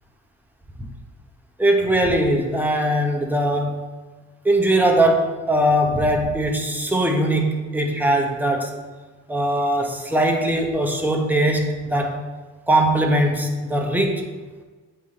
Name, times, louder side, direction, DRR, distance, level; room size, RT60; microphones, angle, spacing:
voice 1, 1.6-3.8 4.4-8.7 9.3-12.2 12.7-14.2, right 1 dB, 5° right, 2 dB, 1.0 m, -20 dB
8.2 x 3.2 x 5.7 m, 1.4 s
cardioid pair, 90°, 30 cm